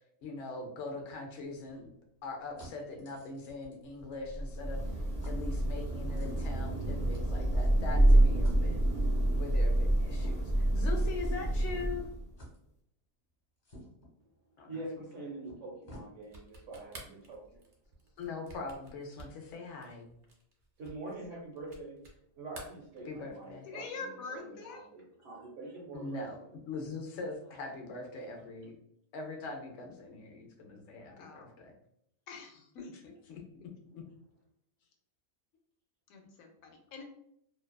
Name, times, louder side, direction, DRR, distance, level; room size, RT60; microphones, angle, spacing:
voice 1, 0.0-1.9 2.2-4.8 5.3-8.8 9.4-12.1 14.6-14.8 18.2-20.1 23.1-23.7 25.9-26.4 26.7-28.8 29.1-31.7 33.3-34.0, left 3 dB, 65° left, 2 dB, 0.8 m, -42 dB
sound 1, 1.4-4.5 4.7-4.9 5.2-5.4 6.1-8.0 8.4-8.6 10.1-10.6 11.3-11.4 12.4-12.6 13.6-14.1 15.1-15.2 15.4-16.1, equal, 40° left, 1.1 m, -51 dB
Thunder / Rain, 4.3-12.3, right 1 dB, 5° left, 0.5 m, -27 dB
voice 2, 14.7-17.6 20.8-22.0 22.4-26.2, right 2 dB, 75° right, -4 dB, 1.0 m, -45 dB
sound 2, 16.2-22.2 22.5-23.5, right 2 dB, 55° right, 0.6 m, -52 dB
voice 3, 23.7-24.9 31.1-31.5 32.3-32.9 36.1-37.0, left 4 dB, 90° left, 4 dB, 1.0 m, -45 dB
2.5 x 2.3 x 2.2 m, 0.73 s
omnidirectional pair, 1.4 m